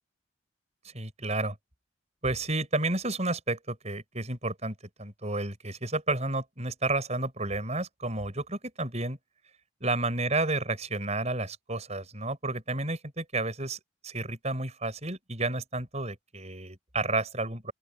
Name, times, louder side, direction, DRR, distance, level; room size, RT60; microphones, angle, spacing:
voice 1, 0.9-1.5 2.2-9.2 9.8-17.7, right 2 dB, 35° right, 6.4 m, -31 dB
open air
head